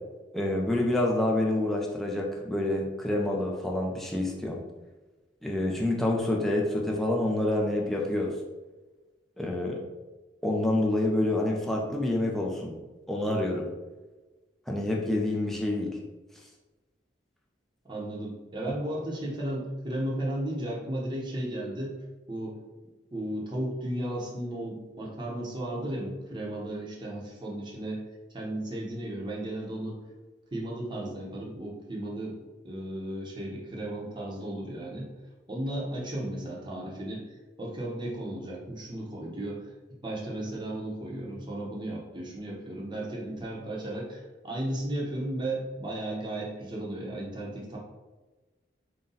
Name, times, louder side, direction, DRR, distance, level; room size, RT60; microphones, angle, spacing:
voice 1, 0.3-4.6 5.4-8.3 9.4-9.8 10.4-12.8 13.1-13.7 14.7-16.0, left 1 dB, ahead, -2 dB, 0.5 m, -27 dB
voice 2, 17.8-21.9 22.3-22.6 23.1-28.0 28.3-30.0 30.5-32.4 32.6-35.1 35.5-39.7 40.0-47.8, right 1 dB, 25° right, -3 dB, 0.8 m, -34 dB
3.9 x 2.2 x 3.9 m, 1.2 s
head